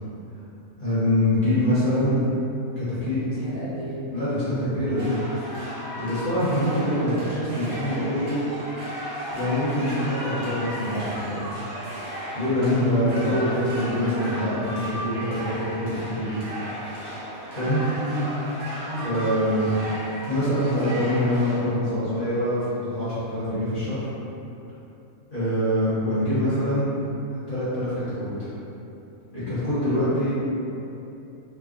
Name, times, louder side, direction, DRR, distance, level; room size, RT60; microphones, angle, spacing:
voice 1, 0.8-2.2 2.8-3.2 4.1-5.1 5.9-8.4 9.3-11.6 12.3-16.4 17.6-17.8 19.0-19.7 20.2-24.1 25.3-26.9 27.3-28.5 29.3-30.3, left 1 dB, 45° left, -13 dB, 0.9 m, -24 dB
voice 2, 3.1-4.0 18.0-18.3 18.9-19.3 26.3-26.4 30.2-30.3, right 2 dB, 45° right, -14 dB, 0.7 m, -33 dB
sound 1, 5.0-21.6, equal, 85° right, 1.2 m, -35 dB
3.3 x 2.0 x 2.4 m, 2.8 s
omnidirectional pair, 1.5 m